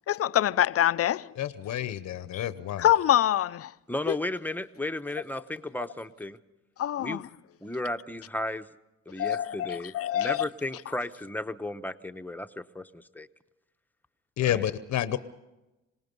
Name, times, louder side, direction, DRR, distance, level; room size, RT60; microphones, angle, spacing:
voice 1, 0.1-1.3 2.3-2.4 2.8-3.7 4.1-4.2 6.8-7.2 9.2-10.4, left 11 dB, 50° left, 0.6 m, -25 dB
voice 2, 1.4-2.9 14.4-15.2, left 11 dB, 70° left, 0.9 m, -29 dB
voice 3, 3.9-6.4 7.0-7.2 7.6-8.7 9.1-13.3 14.4-14.6, left 1 dB, 5° left, 0.9 m, -34 dB
26.5 x 19.0 x 5.4 m
cardioid pair, 90°, 30 cm